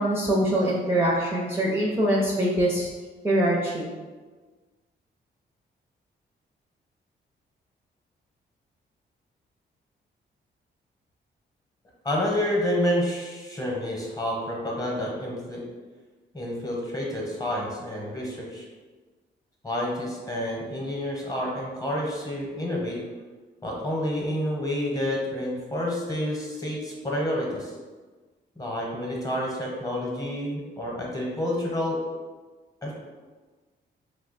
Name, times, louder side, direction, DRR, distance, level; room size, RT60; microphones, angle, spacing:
voice 1, 0.0-2.9 3.2-3.9, right 1 dB, 15° right, -4 dB, 0.5 m, -23 dB
voice 2, 12.0-15.6 16.3-18.7 19.6-23.0 23.6-27.7 28.6-32.0 32.8-32.9, left 1 dB, 20° left, -2 dB, 0.9 m, -29 dB
2.8 x 2.1 x 4.0 m, 1.4 s
cardioid pair, 85°, 19 cm